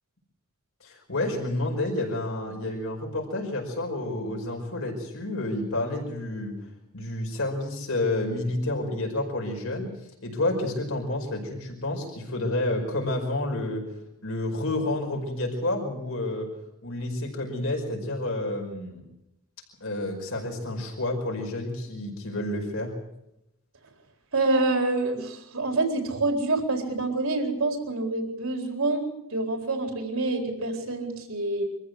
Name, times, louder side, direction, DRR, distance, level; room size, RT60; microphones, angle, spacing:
voice 1, 0.8-6.6 6.9-13.8 14.2-16.5 16.8-19.0 19.8-22.9, left 1 dB, 65° left, 1 dB, 5.3 m, -30 dB
voice 2, 24.3-31.6, right 2 dB, 70° right, 4 dB, 4.2 m, -27 dB
24.5 x 14.5 x 8.0 m, 0.86 s
head